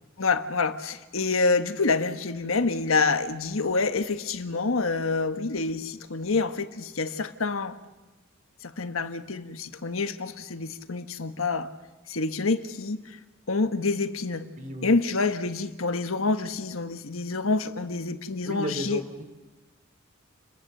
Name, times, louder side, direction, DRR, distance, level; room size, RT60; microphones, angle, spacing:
voice 1, 0.2-7.8 8.6-11.7 12.1-13.2 13.5-14.5 14.8-19.0, left 3 dB, 85° left, 1.4 m, -27 dB
voice 2, 14.6-15.0 18.4-19.2, right 1 dB, 40° right, 2.6 m, -34 dB
30.0 x 22.5 x 6.6 m
head